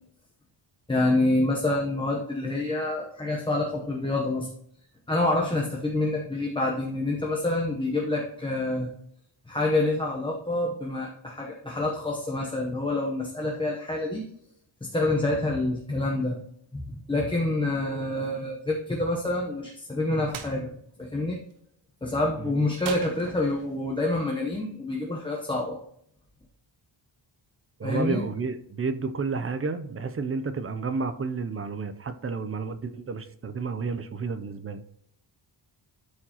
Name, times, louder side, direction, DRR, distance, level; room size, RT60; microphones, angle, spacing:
voice 1, 0.9-4.5 5.1-8.9 9.5-14.2 14.8-16.4 16.7-20.7 21.0-21.4 22.0-25.8 27.8-28.2, left 2 dB, 10° left, -2 dB, 0.8 m, -27 dB
sound 1, 20.3-20.6 22.8-23.8, right 7 dB, 80° right, 1.0 m, -39 dB
voice 2, 27.8-34.8, right 4 dB, 30° right, 10 dB, 0.5 m, -31 dB
12.5 x 4.6 x 2.9 m, 0.71 s
wide cardioid pair, 160°, 46 cm